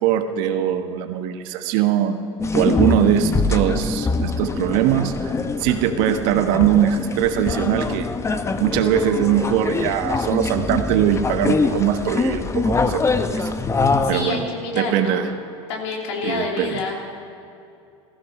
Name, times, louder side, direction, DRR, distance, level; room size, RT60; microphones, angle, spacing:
voice 1, 0.0-2.2 2.5-5.3 5.6-8.1 8.6-13.5 14.1-14.5 14.8-15.3 16.2-16.8, right 10 dB, 65° right, 8 dB, 1.3 m, -21 dB
sound 1, 2.4-14.1, left 3 dB, 20° left, 0.9 m, -23 dB
voice 2, 14.0-15.2 15.7-17.0, left 4 dB, 75° left, 0 dB, 3.2 m, -28 dB
15.5 x 15.0 x 5.8 m, 2.6 s
hypercardioid pair, 95°, 15 cm